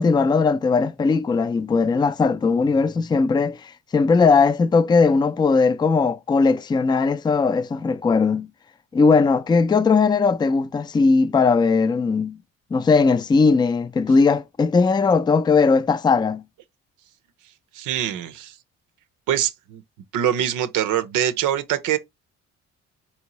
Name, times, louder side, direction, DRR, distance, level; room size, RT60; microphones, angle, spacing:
voice 1, 0.0-8.5 8.9-12.4 12.7-16.4, left 4 dB, 15° left, 0.3 m, -19 dB
voice 2, 17.7-18.6 19.3-19.8 20.1-22.0, right 10 dB, 90° right, 0.6 m, -23 dB
4.5 x 2.8 x 2.9 m
cardioid pair, 90°, 30 cm